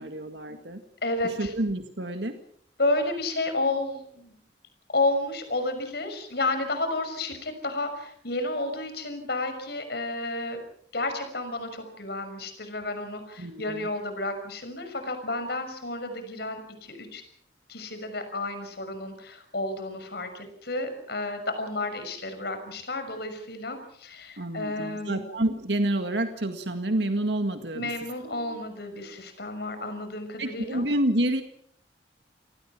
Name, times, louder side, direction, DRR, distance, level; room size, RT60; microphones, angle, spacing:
voice 1, 0.0-0.8 1.2-2.3 13.4-13.9 24.4-27.9 28.2-28.6 30.4-31.4, right 1 dB, 70° right, 7 dB, 2.0 m, -28 dB
voice 2, 1.0-1.5 2.8-4.3 4.9-10.6 10.9-17.2 17.7-25.2 27.7-30.8, left 2 dB, 65° left, 8 dB, 6.1 m, -31 dB
29.5 x 19.0 x 6.1 m, 0.63 s
head